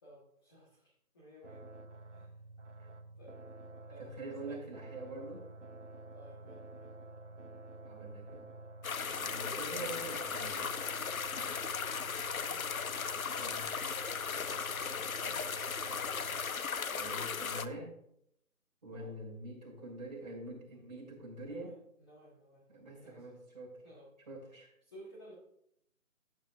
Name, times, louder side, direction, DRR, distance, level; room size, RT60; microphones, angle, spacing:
voice 1, 0.0-1.7 2.1-2.3 3.2-3.4 3.8-4.6 6.1-6.9 11.8-12.7 14.2-16.0 18.9-19.1 21.4-22.7 23.0-23.3 23.8-24.1 24.8-25.3, equal, 15° left, -7 dB, 1.4 m, -56 dB
sound 1, 1.4-16.5, right 2 dB, 55° right, 1.1 m, -50 dB
voice 2, 4.0-5.5 7.8-8.5 9.2-10.7 13.3-13.7 16.9-18.0 18.8-21.8 22.7-23.9 24.3-24.7, right 1 dB, 30° right, -5 dB, 5.0 m, -45 dB
sound 2, 8.8-17.7, left 6 dB, 70° left, 0.8 m, -37 dB
15.5 x 9.2 x 2.6 m, 0.74 s
figure-of-eight pair, 170°, 43 cm